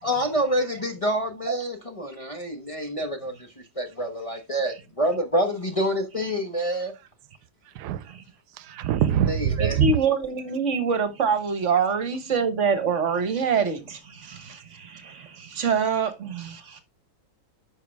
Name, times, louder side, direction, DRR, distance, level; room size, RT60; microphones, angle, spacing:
voice 1, 0.0-3.3 3.8-6.9 9.3-9.8, equal, 25° left, 1.1 m, -27 dB
voice 2, 7.7-8.1 8.6-9.9, right 10 dB, 90° right, 1.2 m, -24 dB
voice 3, 9.6-16.8, right 5 dB, 50° right, 1.4 m, -25 dB
9.3 x 5.4 x 3.5 m
omnidirectional pair, 1.7 m